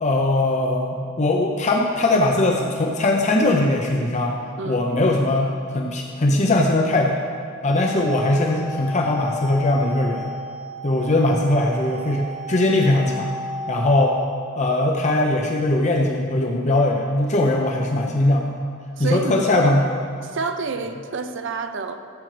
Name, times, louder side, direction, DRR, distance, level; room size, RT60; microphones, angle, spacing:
voice 1, 0.0-4.3 4.6-5.5 5.7-7.2 7.6-10.3 10.8-13.3 13.7-14.2 14.6-18.6 19.0-19.8, left 2 dB, 35° left, 1 dB, 0.6 m, -20 dB
sound 1, 7.7-14.2, equal, ahead, 0.8 m, -34 dB
voice 2, 19.0-19.8 20.2-22.0, right 4 dB, 60° right, 8 dB, 0.6 m, -28 dB
15.0 x 7.9 x 3.3 m, 2.3 s
head